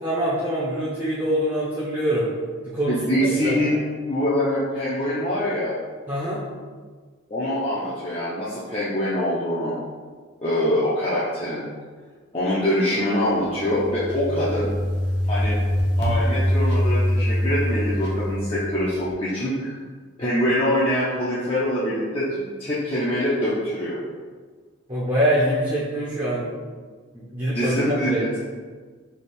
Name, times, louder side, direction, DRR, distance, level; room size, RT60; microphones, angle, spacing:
voice 1, 0.0-2.3 2.7-3.7 6.1-6.4 24.9-26.5 27.1-28.2, equal, 20° right, -9 dB, 0.6 m, -24 dB
voice 2, 2.9-3.8 4.1-5.7 7.3-9.7 10.4-11.7 12.3-14.8 15.3-15.6 16.0-19.7 20.2-24.0 27.5-28.4, equal, 25° left, -9 dB, 0.5 m, -24 dB
sound 1, 13.3-19.0, equal, 50° left, 0.8 m, -24 dB
3.3 x 2.3 x 4.3 m, 1.5 s
head